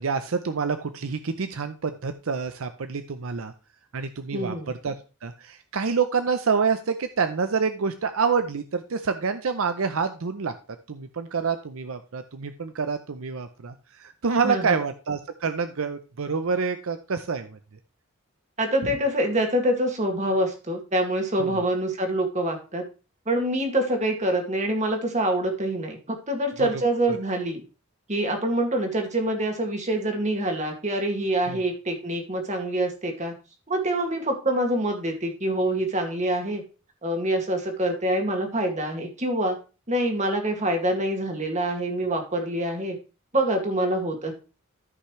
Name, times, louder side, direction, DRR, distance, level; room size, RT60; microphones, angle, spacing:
voice 1, 0.0-3.5 3.9-4.9 5.2-10.5 10.9-17.6 21.4-21.5 26.6-26.8 27.1-27.2 31.5-31.6, right 5 dB, 75° right, 9 dB, 0.6 m, -27 dB
voice 2, 4.3-4.7 14.4-14.8 18.6-22.8 23.3-27.6 28.1-33.3 33.7-36.6 37.0-39.6 39.9-43.0 43.3-44.3, right 1 dB, 35° right, 3 dB, 2.0 m, -25 dB
13.5 x 5.7 x 3.2 m, 0.33 s
head